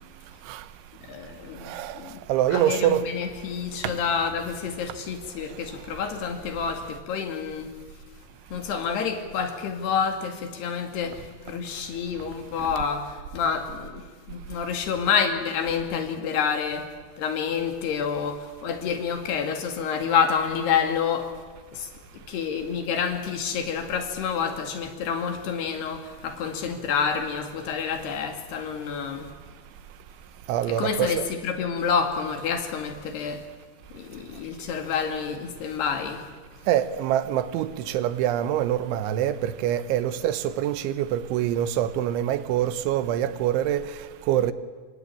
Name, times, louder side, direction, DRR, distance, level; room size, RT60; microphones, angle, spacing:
voice 1, 1.1-2.2 2.5-7.7 8.5-16.9 17.2-21.3 21.7-29.3 30.7-33.5 33.9-36.3, left 6 dB, 65° left, 4.4 m, -28 dB
voice 2, 2.3-3.0 30.5-31.1 36.7-37.7 37.9-43.8 44.3-44.5, right 11 dB, 90° right, 3.5 m, -24 dB
27.0 x 25.5 x 8.8 m
omnidirectional pair, 5.3 m